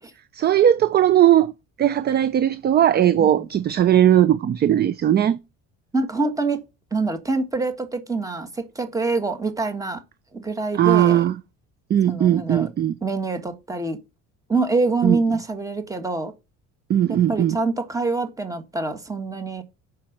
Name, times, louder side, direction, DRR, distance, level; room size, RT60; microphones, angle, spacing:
voice 1, 0.3-1.5 1.8-5.4 10.7-11.4 11.9-13.0 15.0-15.2 16.9-17.6, right 11 dB, 30° right, 0.4 m, -18 dB
voice 2, 3.2-3.5 5.9-6.6 6.9-10.0 10.3-11.2 12.1-12.7 13.0-14.0 14.5-16.3 17.1-19.6, right 3 dB, 10° right, 1.5 m, -25 dB
7.3 x 6.1 x 7.7 m
cardioid pair, 160°, 31 cm